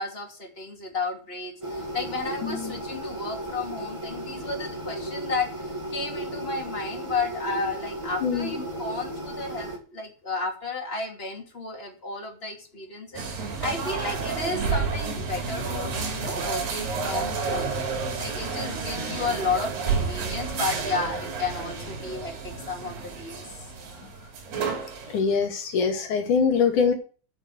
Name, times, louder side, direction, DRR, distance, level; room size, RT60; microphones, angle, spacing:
voice 1, 0.0-17.8 18.2-23.7, left 3 dB, 20° left, 1 dB, 2.6 m, -33 dB
sound 1, 1.6-9.8, right 1 dB, 15° right, 1.2 m, -35 dB
voice 2, 2.4-2.7 8.2-8.5 25.1-26.9, left 6 dB, 65° left, 3 dB, 3.4 m, -23 dB
sound 2, 13.1-25.2, right 5 dB, 85° right, 4.2 m, -30 dB
8.1 x 7.1 x 7.9 m, 0.37 s
omnidirectional pair, 4.0 m